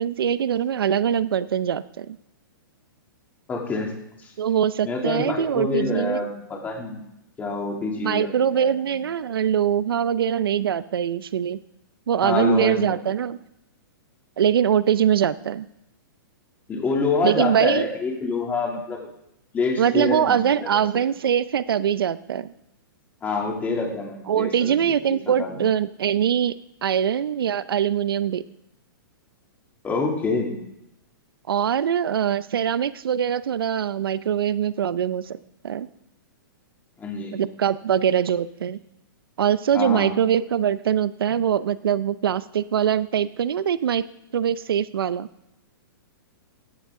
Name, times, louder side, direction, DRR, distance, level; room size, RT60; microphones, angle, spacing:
voice 1, 0.0-2.2 4.4-6.2 8.0-11.6 12.1-13.4 14.4-15.7 17.2-17.9 19.8-22.5 24.3-26.5 26.8-28.4 31.5-35.4 35.6-35.9 37.3-38.8 39.4-44.0 44.3-45.3, right 9 dB, 90° right, 17 dB, 0.5 m, -22 dB
voice 2, 3.5-3.9 4.2-4.3 4.8-7.0 7.4-8.7 12.2-13.0 16.7-19.0 19.5-21.0 23.2-24.7 25.1-25.6 29.8-30.5 37.0-37.3 39.7-40.1, left 4 dB, 15° left, 0 dB, 2.6 m, -26 dB
16.0 x 9.7 x 3.7 m, 0.85 s
hypercardioid pair, 155°, 12 cm